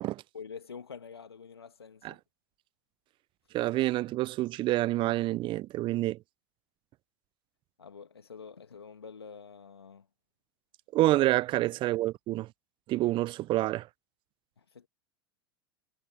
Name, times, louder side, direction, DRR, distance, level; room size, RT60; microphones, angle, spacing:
voice 1, 0.3-2.2 7.8-10.1 14.6-14.9, left 6 dB, 90° left, 2.4 m, -47 dB
voice 2, 3.5-6.2 10.9-12.5 12.9-13.9, right 16 dB, 40° right, 0.7 m, -27 dB
hypercardioid pair, 90°, 13 cm